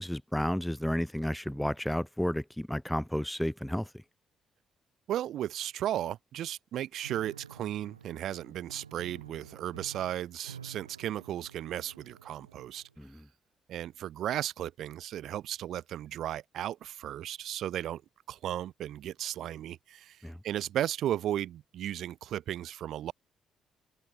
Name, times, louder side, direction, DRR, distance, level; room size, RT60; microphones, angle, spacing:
voice 1, 0.0-4.0 13.0-13.2 20.2-20.4, equal, 5° left, 1.2 m, -32 dB
voice 2, 5.1-12.8 13.7-18.0 18.3-20.2 20.4-23.1, right 11 dB, 60° right, 3.0 m, -35 dB
Piano, 7.0-12.9, right 7 dB, 90° right, 1.9 m, -51 dB
open air
figure-of-eight pair, 40°, 0 cm